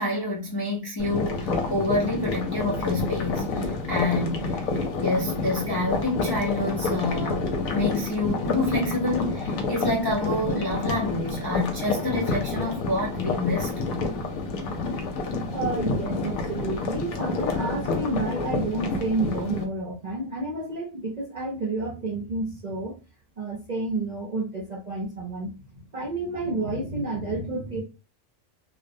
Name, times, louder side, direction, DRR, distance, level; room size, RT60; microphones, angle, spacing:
voice 1, 0.0-13.7, left 2 dB, 35° left, 0.3 m, -28 dB
sound 1, 1.0-19.6, left 3 dB, 85° left, 1.0 m, -28 dB
voice 2, 15.5-22.9 23.4-27.8, right 2 dB, 45° right, 0.6 m, -30 dB
2.4 x 2.0 x 2.6 m
omnidirectional pair, 1.4 m